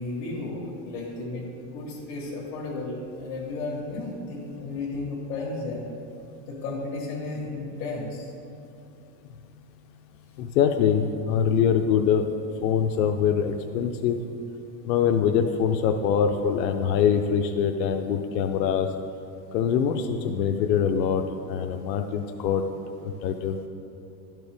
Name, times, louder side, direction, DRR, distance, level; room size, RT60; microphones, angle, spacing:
voice 1, 0.0-5.9 6.5-8.3 18.2-18.4, left 2 dB, 65° left, -5 dB, 1.5 m, -33 dB
voice 2, 10.4-12.2 12.6-14.2 14.8-18.9 19.5-21.2 21.5-22.6 23.0-23.7, left 7 dB, 90° left, 5 dB, 0.6 m, -23 dB
12.0 x 4.6 x 3.4 m, 2.7 s
supercardioid pair, 175°, 49 cm